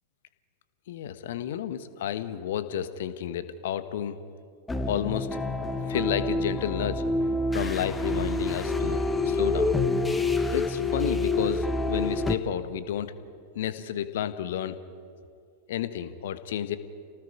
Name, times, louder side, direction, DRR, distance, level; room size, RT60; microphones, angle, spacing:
voice 1, 0.9-4.2 4.9-5.4 5.8-7.0 7.5-9.7 10.5-13.1 13.5-14.8 15.7-16.8, left 10 dB, 55° left, 13 dB, 1.2 m, -31 dB
sound 1, 4.7-12.4, left 2 dB, 10° left, 1.2 m, -27 dB
29.5 x 19.0 x 4.8 m, 2.5 s
figure-of-eight pair, 90°, 0 cm